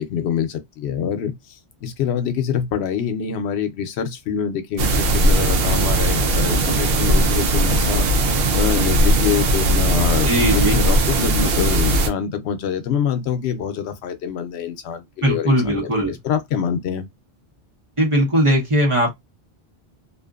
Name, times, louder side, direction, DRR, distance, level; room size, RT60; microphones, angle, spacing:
voice 1, 0.0-1.3 1.8-8.1 8.5-15.9 16.2-17.1, left 8 dB, 85° left, 0.8 m, -25 dB
sound 1, 4.8-12.1, right 1 dB, 70° right, 0.8 m, -18 dB
voice 2, 10.2-10.8 15.2-16.2 18.0-19.1, equal, 30° right, 1.0 m, -19 dB
2.5 x 2.4 x 2.3 m
omnidirectional pair, 1.1 m